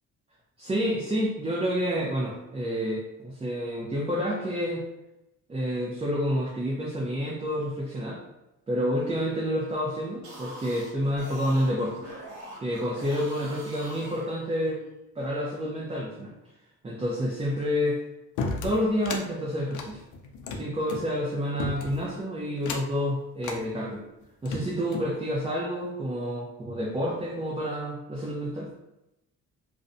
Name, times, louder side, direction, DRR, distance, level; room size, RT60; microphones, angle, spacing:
voice 1, 0.6-4.8 5.5-8.2 8.7-12.0 12.6-14.8 15.2-16.3 16.8-18.0 18.6-20.0 20.5-24.0 24.4-28.7, equal, 20° right, -4 dB, 0.5 m, -29 dB
sound 1, 10.1-14.8, right 1 dB, 65° right, 1.0 m, -44 dB
sound 2, 18.4-19.3 19.7-21.1 21.6-22.1 22.6-23.0 23.4-23.6 24.2-25.1, left 4 dB, 80° left, 0.5 m, -34 dB
2.4 x 2.1 x 2.6 m, 0.90 s
cardioid pair, 90°, 30 cm